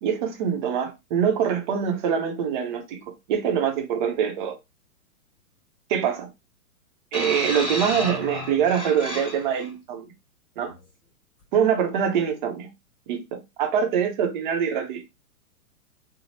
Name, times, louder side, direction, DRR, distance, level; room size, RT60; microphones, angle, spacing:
voice 1, 0.0-4.6 5.9-6.3 7.1-10.1 10.6-10.7 11.5-12.7 13.1-15.0, right 8 dB, 35° right, 0.6 m, -24 dB
sound 1, 7.1-9.7 10.6-10.8, left 1 dB, 10° left, 0.9 m, -32 dB
2.7 x 2.0 x 3.0 m
hypercardioid pair, 135°, 45 cm